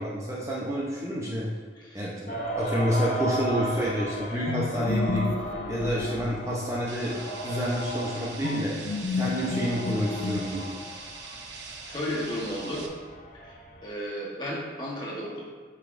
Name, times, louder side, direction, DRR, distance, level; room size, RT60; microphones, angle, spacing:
voice 1, 0.0-1.5 1.9-5.3 5.7-8.7 9.1-10.7, equal, 15° right, -5 dB, 0.8 m, -29 dB
voice 2, 1.8-2.1 11.9-12.9 13.3-15.4, equal, 25° left, -4 dB, 1.2 m, -34 dB
sound 1, 2.3-13.9, right 1 dB, 45° left, 0.7 m, -36 dB
sound 2, 4.5-7.0 8.4-10.9, left 4 dB, 80° left, 0.6 m, -32 dB
sound 3, 6.9-12.9, right 4 dB, 85° right, 0.8 m, -43 dB
8.3 x 5.6 x 2.6 m, 1.5 s
head